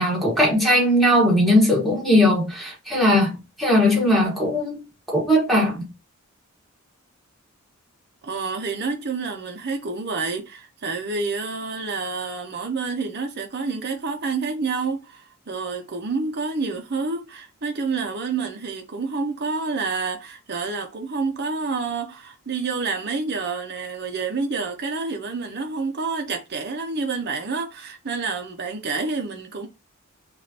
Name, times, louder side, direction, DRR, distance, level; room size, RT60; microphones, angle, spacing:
voice 1, 0.0-4.8 5.1-5.9, left 1 dB, ahead, 1.4 m, -19 dB
voice 2, 8.2-29.7, right 4 dB, 50° right, 0.8 m, -28 dB
5.1 x 2.6 x 2.8 m
head